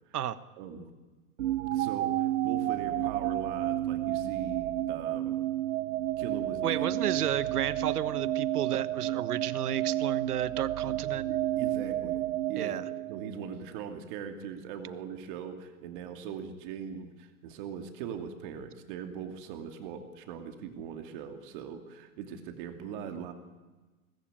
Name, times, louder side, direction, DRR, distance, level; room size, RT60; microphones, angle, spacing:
voice 1, 0.6-0.9 1.7-5.4 6.2-6.9 11.0-12.8 13.1-23.3, right 7 dB, 35° right, 6 dB, 2.8 m, -40 dB
sound 1, 1.4-13.5, right 13 dB, 55° right, 0.7 m, -31 dB
voice 2, 6.6-11.3 12.6-12.8, right 10 dB, 75° right, 15 dB, 1.4 m, -32 dB
22.5 x 19.5 x 9.1 m, 1.2 s
hypercardioid pair, 160°, 45 cm